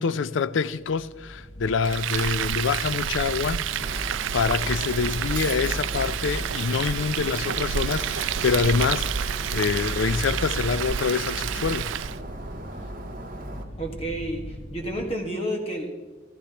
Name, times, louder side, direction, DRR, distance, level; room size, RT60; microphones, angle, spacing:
voice 1, 0.0-11.9, left 5 dB, 75° left, 0.4 m, -26 dB
sound 1, 0.8-15.0, equal, 50° left, 1.4 m, -36 dB
Frying (food), 1.8-12.2, right 10 dB, 80° right, 0.4 m, -29 dB
Shatter, 3.7-13.6, right 2 dB, 45° right, 1.5 m, -40 dB
voice 2, 13.8-15.9, right 1 dB, 30° left, 1.7 m, -30 dB
14.5 x 14.5 x 3.0 m
head